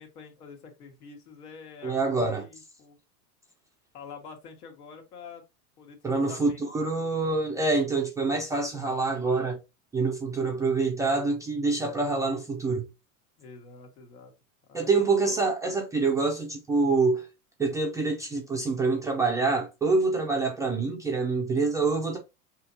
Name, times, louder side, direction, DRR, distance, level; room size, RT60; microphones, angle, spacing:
voice 1, 0.0-3.0 3.9-5.4 5.8-6.7 6.9-7.1 13.4-14.3 14.7-15.5, left 5 dB, 80° left, 1.8 m, -47 dB
voice 2, 1.8-2.5 6.0-9.6 9.9-12.9 14.7-17.3 17.6-22.2, right 3 dB, 10° right, 0.3 m, -26 dB
5.5 x 2.9 x 2.7 m
supercardioid pair, 130°, 45 cm